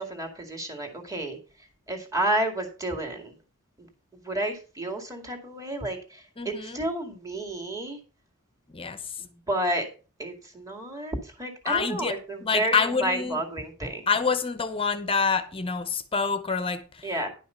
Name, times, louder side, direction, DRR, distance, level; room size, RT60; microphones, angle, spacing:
voice 1, 0.0-1.4 1.9-3.3 4.2-8.0 9.2-9.9 10.2-14.0 17.0-17.3, right 1 dB, 15° right, 2.2 m, -31 dB
voice 2, 6.4-6.8 8.7-9.0 11.6-13.4 14.1-17.1, left 5 dB, 25° left, 0.9 m, -27 dB
11.0 x 5.6 x 5.6 m
head